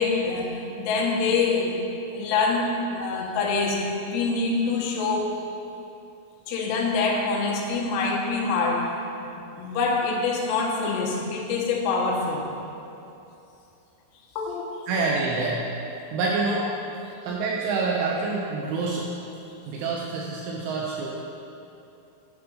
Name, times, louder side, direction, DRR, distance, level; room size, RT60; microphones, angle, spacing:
voice 1, 0.0-1.8 2.1-5.3 6.5-9.0 9.2-9.3 9.6-12.5 14.4-14.9, left 4 dB, 85° left, -1 dB, 3.8 m, -25 dB
voice 2, 14.9-15.6 16.1-16.7 17.2-19.0 19.7-21.1, right 3 dB, 80° right, -2 dB, 2.9 m, -26 dB
8.2 x 8.1 x 5.2 m, 2.8 s
omnidirectional pair, 6.0 m